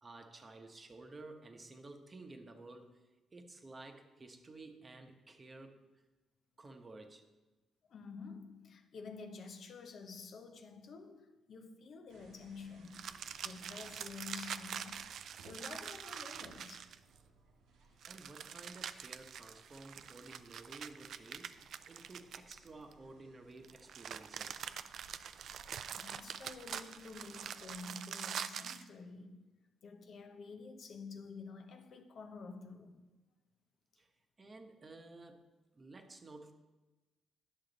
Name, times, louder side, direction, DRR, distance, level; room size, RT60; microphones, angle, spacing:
voice 1, 0.0-3.0 3.3-5.8 6.6-7.3 18.0-24.7 34.0-34.1 34.4-35.5 35.7-36.5, right 2 dB, 30° right, 0.9 m, -53 dB
voice 2, 7.9-15.1 15.4-17.0 25.7-29.4 29.8-33.1, left 4 dB, 55° left, 0.7 m, -50 dB
sound 1, 12.1-27.9, right 3 dB, 85° right, 1.1 m, -64 dB
sound 2, 12.9-17.2 18.0-22.9 23.6-28.9, right 8 dB, 65° right, 0.3 m, -45 dB
10.5 x 6.3 x 3.9 m
cardioid pair, 90°, 0 cm